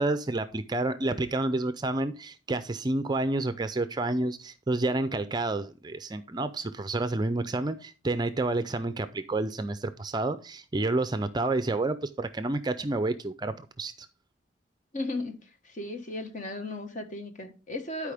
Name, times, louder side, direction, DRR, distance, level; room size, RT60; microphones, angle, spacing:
voice 1, 0.0-14.1, right 2 dB, 20° right, 0.5 m, -29 dB
voice 2, 14.9-15.4 15.8-18.1, left 2 dB, 40° left, 1.4 m, -35 dB
12.0 x 5.0 x 3.4 m
head